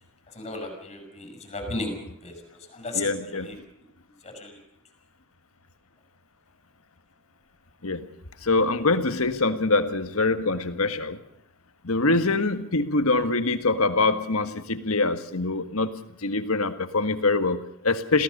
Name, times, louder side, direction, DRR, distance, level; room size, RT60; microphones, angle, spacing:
voice 1, 0.3-3.6 4.2-4.6, left 2 dB, 30° left, 4 dB, 6.9 m, -35 dB
voice 2, 2.9-3.5 7.8-8.0 8.4-11.2 11.8-15.9 16.2-18.2, left 3 dB, 70° left, 9 dB, 1.7 m, -24 dB
27.0 x 16.5 x 6.7 m, 0.76 s
head